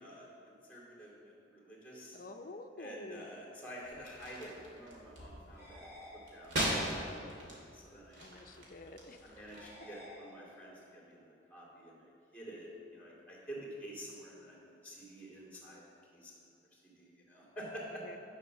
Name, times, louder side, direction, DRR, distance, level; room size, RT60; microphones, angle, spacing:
voice 1, 0.0-2.2 2.8-6.0 6.3-6.6 7.1-8.2 9.2-14.6 14.8-15.8 16.1-16.3 16.7-18.0, equal, 10° left, -4 dB, 2.5 m, -49 dB
voice 2, 2.1-3.3 8.2-9.2 18.0-18.2, left 2 dB, 50° left, 5 dB, 0.7 m, -48 dB
sound 1, 3.8-9.7, equal, 75° right, 2.7 m, -40 dB
sound 2, 5.5-6.9 9.5-10.9, left 1 dB, 15° right, 2.6 m, -54 dB
11.0 x 5.9 x 6.5 m, 2.6 s
head